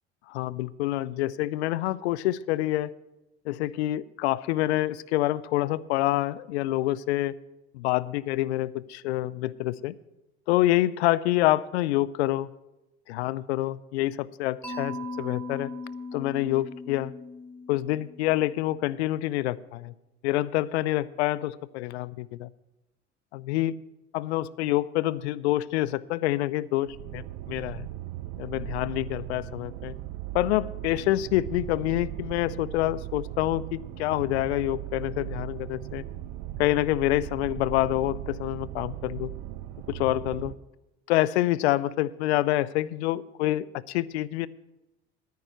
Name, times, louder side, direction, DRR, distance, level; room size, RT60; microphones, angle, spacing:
voice 1, 0.3-2.9 3.5-7.3 7.7-9.9 10.5-12.5 13.1-15.7 16.1-17.1 17.7-19.9 20.2-22.5 23.3-23.7 24.1-26.9 27.1-27.2 27.5-27.9 28.4-29.9 30.3-36.0 36.6-39.3 39.9-40.5 41.1-44.5, left 16 dB, 80° left, 20 dB, 0.5 m, -27 dB
Mallet percussion, 14.6-18.6, left 2 dB, 5° left, 2.7 m, -38 dB
sound 1, 26.9-40.5, right 13 dB, 70° right, 0.7 m, -38 dB
9.5 x 9.2 x 6.6 m, 0.96 s
hypercardioid pair, 60°, 32 cm